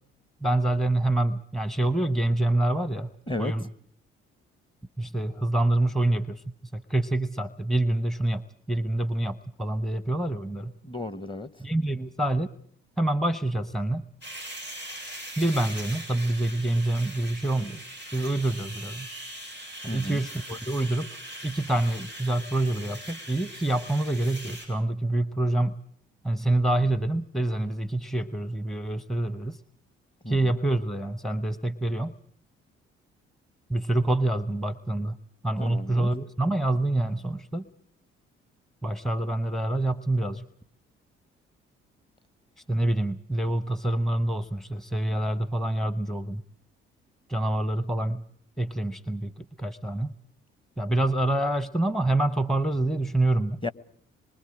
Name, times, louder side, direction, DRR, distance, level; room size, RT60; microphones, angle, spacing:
voice 1, 0.4-3.1 3.4-3.7 5.0-6.4 6.7-10.7 11.6-12.5 13.0-14.1 15.4-17.8 18.1-19.1 19.8-21.1 21.4-25.8 26.2-29.6 30.3-32.1 33.7-35.2 35.4-37.6 38.8-40.4 42.7-46.4 47.3-48.2 48.6-50.1 50.8-53.6, right 1 dB, ahead, 0.8 m, -26 dB
voice 2, 10.8-11.5 19.8-20.3 30.2-30.4 35.6-36.1 53.6-53.7, left 2 dB, 15° left, 1.1 m, -33 dB
sound 1, 14.2-24.7, right 1 dB, 90° left, 7.7 m, -41 dB
26.0 x 23.0 x 4.8 m
hypercardioid pair, 50°, 30 cm